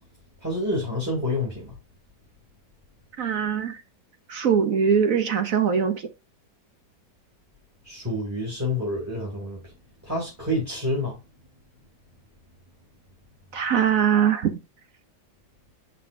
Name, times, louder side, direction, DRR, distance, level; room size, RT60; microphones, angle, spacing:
voice 1, 0.4-1.7 7.8-9.6 10.1-11.2, left 1 dB, 10° right, 2.4 m, -28 dB
voice 2, 3.2-3.8 4.3-6.1 13.5-14.5, right 7 dB, 60° right, 1.0 m, -22 dB
6.6 x 5.5 x 2.6 m
omnidirectional pair, 2.0 m